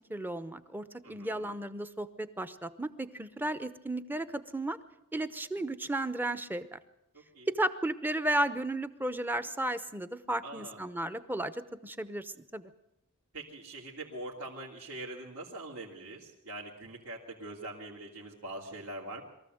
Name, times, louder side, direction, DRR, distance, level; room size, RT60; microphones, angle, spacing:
voice 1, 0.1-4.8 5.1-6.8 7.5-12.7, right 1 dB, 10° right, 13 dB, 0.8 m, -34 dB
voice 2, 1.0-1.5 7.1-7.5 10.4-10.8 13.3-19.2, right 2 dB, 75° right, -5 dB, 3.0 m, -43 dB
23.0 x 14.5 x 7.9 m, 0.87 s
head